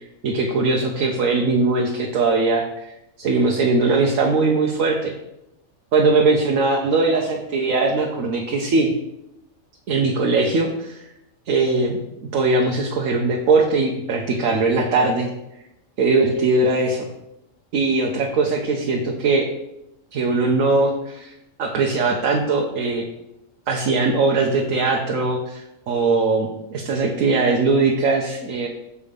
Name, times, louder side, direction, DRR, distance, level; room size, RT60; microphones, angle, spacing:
voice 1, 0.2-2.9 3.2-5.1 5.9-8.9 9.9-11.1 11.5-12.0 12.3-15.3 16.0-17.1 17.7-19.5 20.1-21.3 21.6-23.0 23.7-28.7, right 3 dB, 80° right, 0 dB, 1.3 m, -20 dB
7.0 x 4.8 x 5.2 m, 0.86 s
omnidirectional pair, 1.4 m